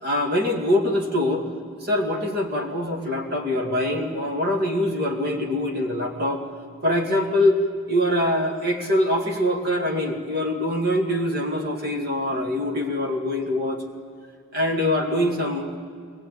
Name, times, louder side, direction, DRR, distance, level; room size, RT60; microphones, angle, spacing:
voice 1, 0.0-1.5 1.8-6.5 6.8-7.6 7.9-13.8 14.5-15.8, left 1 dB, 50° right, 2 dB, 2.5 m, -24 dB
22.5 x 19.0 x 9.4 m, 2.2 s
head